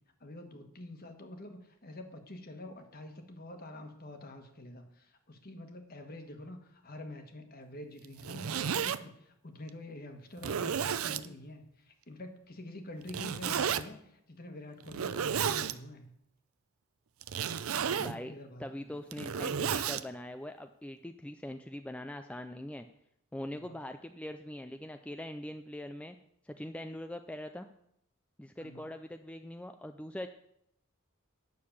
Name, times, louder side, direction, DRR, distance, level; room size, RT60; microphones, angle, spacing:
voice 1, 0.2-16.1 17.7-19.0 23.5-23.7 28.6-28.9, left 1 dB, 45° left, 6 dB, 1.4 m, -47 dB
Zipper (clothing), 8.0-9.0 9.7-9.8 10.4-11.3 13.1-13.8 14.8-15.7 17.2-18.2 18.9-20.0, right 7 dB, 85° right, 0.5 m, -32 dB
voice 2, 18.0-18.3 18.6-22.9 23.3-26.2 26.4-27.7 28.4-30.3, left 1 dB, 5° left, 7 dB, 0.3 m, -42 dB
9.4 x 6.7 x 7.1 m, 0.73 s
head